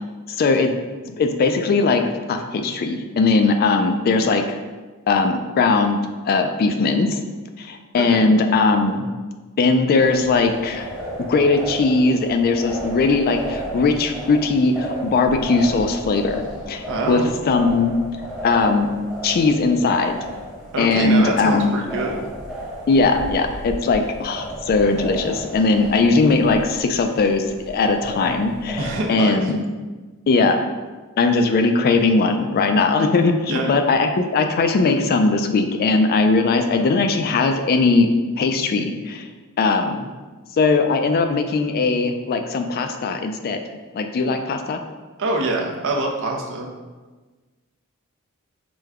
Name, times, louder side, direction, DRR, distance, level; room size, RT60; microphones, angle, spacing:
voice 1, 0.3-0.7 1.0-2.0 2.3-4.6 5.1-6.0 6.2-7.2 7.6-9.1 9.6-10.9 11.2-17.9 18.2-18.9 19.2-20.3 20.8-21.7 22.9-29.6 30.3-30.6 31.2-38.1 38.4-40.1 40.5-43.6 43.9-44.8, left 3 dB, 45° left, 6 dB, 0.3 m, -19 dB
voice 2, 8.0-8.3 16.9-17.3 20.7-22.1 28.8-29.4 33.5-33.7 45.2-46.7, right 2 dB, 60° right, 1 dB, 0.6 m, -25 dB
sound 1, 9.9-29.0, right 1 dB, 5° right, 0.7 m, -34 dB
5.0 x 2.2 x 3.4 m, 1.3 s
head